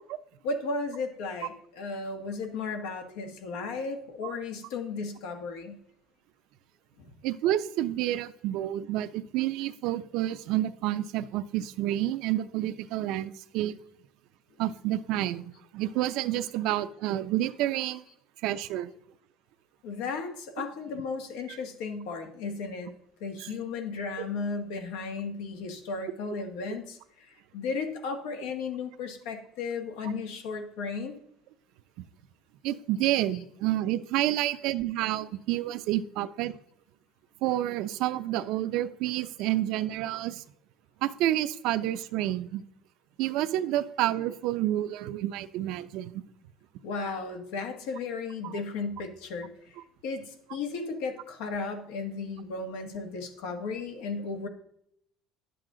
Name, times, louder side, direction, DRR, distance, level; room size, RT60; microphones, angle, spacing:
voice 1, 0.4-5.8 7.0-7.1 19.8-22.9 23.2-31.2 46.8-49.8 50.0-54.5, left 4 dB, 85° left, 5 dB, 1.5 m, -35 dB
voice 2, 7.2-13.8 14.6-18.0 18.4-18.9 21.5-21.6 23.4-23.5 32.6-36.5 37.4-40.4 41.0-42.6 43.2-46.2 48.4-48.5, right 14 dB, 70° right, 12 dB, 0.6 m, -29 dB
10.5 x 7.8 x 3.8 m, 0.72 s
cardioid pair, 130°, 0 cm